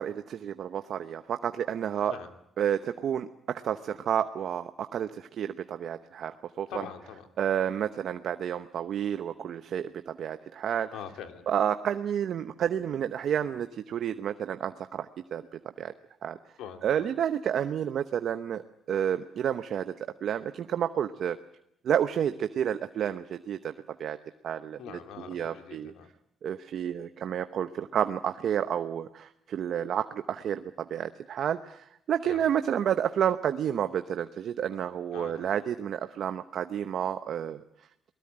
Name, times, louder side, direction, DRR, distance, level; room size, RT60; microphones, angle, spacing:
voice 1, 0.0-2.1 2.6-6.7 7.4-10.9 11.5-15.9 16.2-16.4 16.8-18.6 18.9-21.4 21.8-23.7 24.0-24.2 24.4-25.0 25.3-25.9 26.4-37.6, right 9 dB, 65° right, 10 dB, 0.9 m, -30 dB
voice 2, 6.7-7.3 10.9-11.5 16.6-17.1 24.8-26.1 32.2-32.4 35.1-35.5, left 8 dB, 90° left, 6 dB, 2.4 m, -43 dB
22.5 x 20.0 x 8.8 m, 0.76 s
cardioid pair, 90°, 0 cm